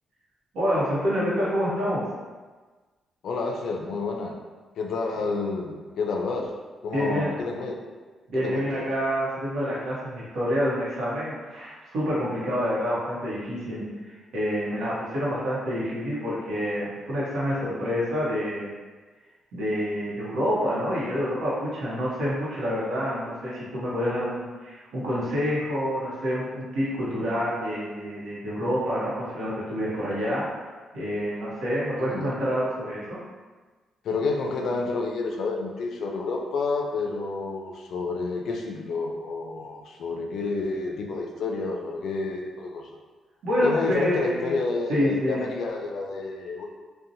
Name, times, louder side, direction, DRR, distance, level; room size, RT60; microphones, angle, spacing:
voice 1, 0.5-2.0 6.9-7.3 8.3-13.8 14.3-18.7 19.5-30.4 30.9-33.2 43.4-44.6 44.9-45.4, equal, 80° right, -8 dB, 0.8 m, -27 dB
voice 2, 3.2-4.3 4.8-6.5 6.8-7.7 8.3-8.9 32.0-32.4 34.0-42.9 43.6-46.7, left 3 dB, 65° left, 1 dB, 0.3 m, -29 dB
2.7 x 2.1 x 2.6 m, 1.3 s
cardioid pair, 135°, 0 cm